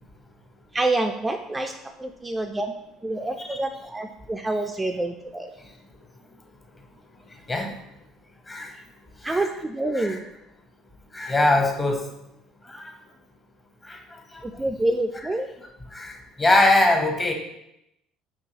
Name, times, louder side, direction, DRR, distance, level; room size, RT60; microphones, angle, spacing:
voice 1, 0.7-1.7 2.0-2.7 3.0-5.5 9.2-10.2 14.4-15.5, right 2 dB, 15° right, 4 dB, 0.3 m, -27 dB
voice 2, 11.1-12.0 12.7-12.8 13.9-14.0 15.9-17.3, left 2 dB, 25° left, 2 dB, 0.9 m, -22 dB
5.3 x 2.7 x 2.8 m, 0.86 s
hypercardioid pair, 70°, 0 cm